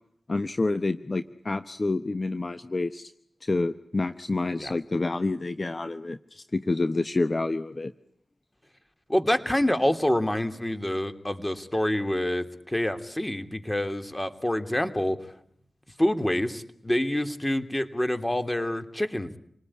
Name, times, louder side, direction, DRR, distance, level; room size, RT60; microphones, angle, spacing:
voice 1, 0.3-3.1 3.4-7.9, left 2 dB, 45° left, 11 dB, 1.1 m, -28 dB
voice 2, 9.1-15.2 16.0-19.4, left 1 dB, 15° left, 9 dB, 3.1 m, -27 dB
29.0 x 19.5 x 9.9 m, 0.70 s
cardioid pair, 50°, 0 cm